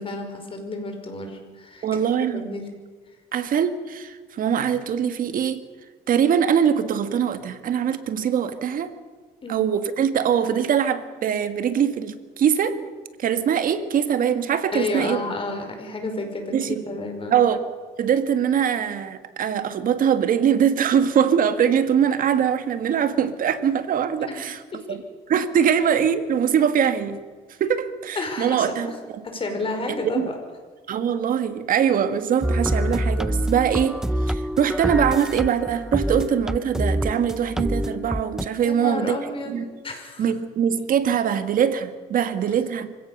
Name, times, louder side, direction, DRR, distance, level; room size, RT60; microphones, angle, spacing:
voice 1, 0.0-1.9 2.3-2.6 9.4-9.7 14.7-17.4 24.2-24.4 24.7-24.8 28.2-28.9 29.2-30.4 38.6-39.6 39.8-40.3, left 2 dB, 30° left, 4 dB, 5.1 m, -31 dB
voice 2, 1.8-2.5 3.3-5.6 6.1-8.9 9.5-12.8 13.2-15.2 16.5-16.8 17.3-17.6 18.0-24.6 24.9-25.0 25.3-27.2 27.6-29.2 30.2-30.3 30.9-39.2 39.5-39.7 40.2-42.9, right 8 dB, 55° right, 10 dB, 1.7 m, -22 dB
sound 1, 32.4-38.5, equal, 5° right, 0.5 m, -26 dB
25.5 x 16.5 x 6.6 m, 1.4 s
cardioid pair, 110°, 17 cm